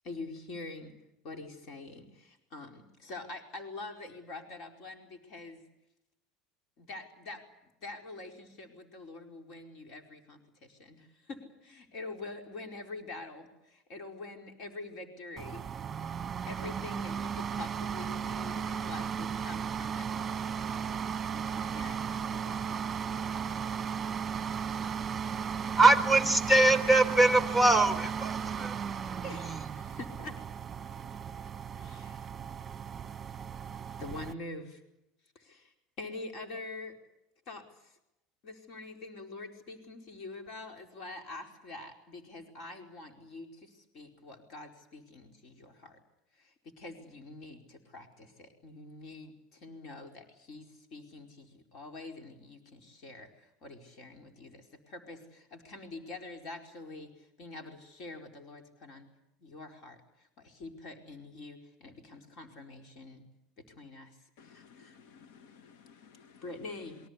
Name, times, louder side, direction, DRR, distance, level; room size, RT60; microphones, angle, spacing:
voice 1, 0.0-0.9 1.2-5.6 6.8-7.4 7.8-15.6 16.5-21.0 21.3-22.9 23.2-23.5 24.4-24.9 29.2-30.4 31.8-32.3 34.0-34.8 35.3-36.9 37.5-38.0 38.4-46.0 46.3-59.1 59.4-63.2 63.8-65.0 66.4-67.0, left 2 dB, 50° left, 3 dB, 4.7 m, -46 dB
sound 1, 15.4-34.3, right 7 dB, 20° right, 1.5 m, -36 dB
voice 2, 24.7-29.2, right 2 dB, 15° left, 11 dB, 3.4 m, -24 dB
voice 3, 64.4-66.4, left 6 dB, 75° left, 12 dB, 1.3 m, -57 dB
28.5 x 23.0 x 8.4 m, 0.89 s
supercardioid pair, 135°, 0 cm